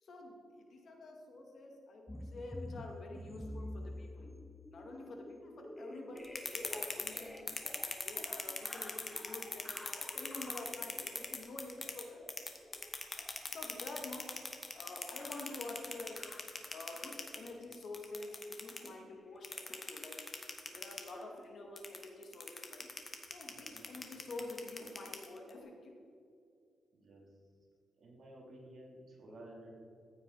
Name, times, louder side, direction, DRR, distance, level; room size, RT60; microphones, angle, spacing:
voice 1, 0.0-4.3 4.7-7.6 8.0-12.2 13.5-14.2 14.7-16.4 16.7-20.3 20.7-22.9 23.3-26.0, left 2 dB, 55° left, 1 dB, 2.1 m, -48 dB
sound 1, 2.1-17.4 18.2-18.5 18.7-18.9 19.2-19.4 19.7-19.9, left 1 dB, 10° left, 0.6 m, -50 dB
sound 2, 6.2-12.0 12.3-18.9 19.4-21.1 21.8-25.5, left 3 dB, 30° left, 1.3 m, -41 dB
voice 2, 23.5-23.9 26.9-27.2 28.0-29.7, right 1 dB, 50° right, -3 dB, 3.3 m, -54 dB
15.0 x 8.7 x 4.2 m, 2.5 s
cardioid pair, 120°, 0 cm